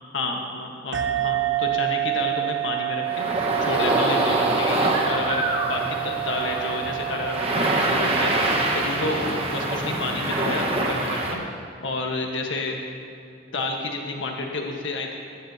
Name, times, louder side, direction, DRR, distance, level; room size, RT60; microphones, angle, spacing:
voice 1, 0.1-12.8 13.5-15.2, left 2 dB, 75° left, 1 dB, 1.4 m, -30 dB
sound 1, 0.9-10.0, right 16 dB, 80° right, 0.9 m, -29 dB
sound 2, 3.1-11.3, right 2 dB, 30° right, 1.4 m, -25 dB
19.5 x 14.0 x 2.9 m, 2.6 s
head